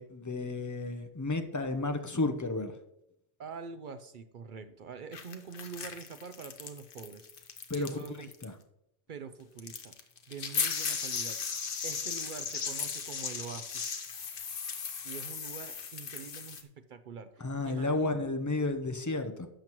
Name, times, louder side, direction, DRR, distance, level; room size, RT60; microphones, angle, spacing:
voice 1, 0.0-2.7 7.7-7.9 8.4-8.5 17.4-19.5, left 2 dB, 20° left, 7 dB, 0.5 m, -32 dB
voice 2, 3.4-8.3 9.1-9.9 10.3-11.4 11.8-13.9 15.0-18.1, right 5 dB, 55° right, 10 dB, 0.6 m, -45 dB
sound 1, 5.1-8.1 8.3-8.4 9.6-16.6, left 6 dB, 50° left, 1.0 m, -36 dB
11.5 x 7.3 x 3.0 m, 0.82 s
omnidirectional pair, 1.2 m